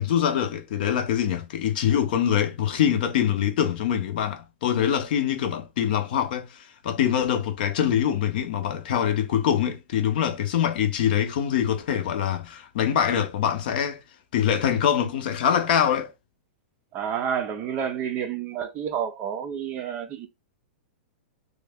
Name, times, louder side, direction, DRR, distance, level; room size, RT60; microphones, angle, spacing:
voice 1, 0.0-14.0 14.3-16.1, left 9 dB, 50° left, 0.7 m, -24 dB
voice 2, 16.9-20.3, right 8 dB, 20° right, 0.4 m, -29 dB
3.3 x 2.2 x 3.4 m
hypercardioid pair, 165°, 6 cm